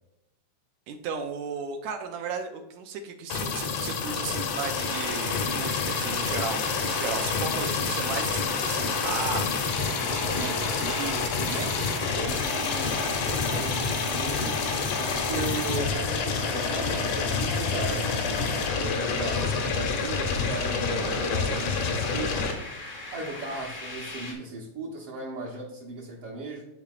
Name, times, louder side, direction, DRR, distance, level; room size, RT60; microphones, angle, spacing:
voice 1, 0.9-11.7, right 6 dB, 75° right, 5 dB, 1.9 m, -35 dB
sound 1, 3.3-22.5, left 5 dB, 80° left, 2.3 m, -28 dB
sound 2, 4.8-24.3, left 2 dB, 55° left, 0.4 m, -40 dB
voice 2, 9.8-11.0 11.4-18.2 18.8-22.4 23.1-26.6, right 3 dB, 60° right, -4 dB, 1.8 m, -37 dB
11.0 x 4.6 x 2.4 m, 0.90 s
omnidirectional pair, 3.3 m